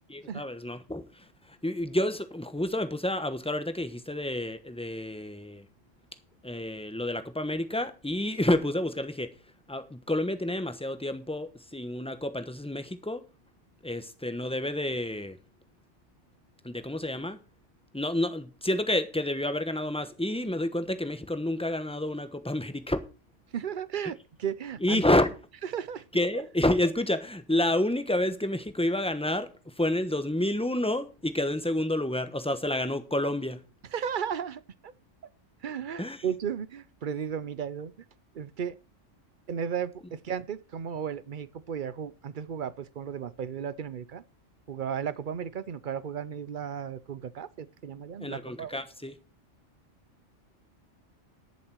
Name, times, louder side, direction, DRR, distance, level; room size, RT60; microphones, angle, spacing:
voice 1, 0.1-5.7 6.4-9.3 9.7-13.2 13.8-15.4 16.6-17.4 17.9-23.0 24.8-25.3 26.1-33.6 36.0-36.2 48.2-49.1, left 1 dB, 5° left, 1.0 m, -29 dB
voice 2, 23.5-25.0 25.7-26.0 33.9-34.9 35.6-38.1 38.3-38.8 39.5-44.2 44.7-48.8, right 8 dB, 50° right, 0.7 m, -35 dB
11.0 x 7.4 x 6.2 m
omnidirectional pair, 1.3 m